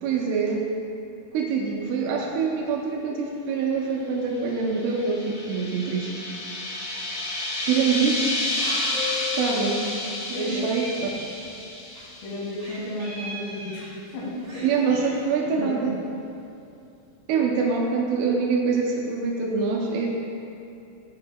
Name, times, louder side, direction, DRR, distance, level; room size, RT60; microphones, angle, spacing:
voice 1, 0.0-0.7 1.3-6.1 7.7-8.3 9.4-9.9 10.3-11.1 14.6-16.0 17.3-20.1, right 5 dB, 80° right, -1 dB, 3.1 m, -25 dB
sound 1, 4.5-12.8, left 1 dB, 70° left, 3.9 m, -31 dB
sound 2, 8.9-10.5, left 12 dB, 50° left, 2.0 m, -35 dB
Meow, 9.9-10.0 10.1-12.1 12.6-14.1 14.4-15.2, right 1 dB, 50° right, 1.9 m, -41 dB
voice 2, 10.3-10.6 12.2-14.3 14.5-14.6 15.6-15.9, left 1 dB, 85° left, -5 dB, 4.4 m, -33 dB
11.5 x 7.5 x 2.2 m, 2.7 s
omnidirectional pair, 5.8 m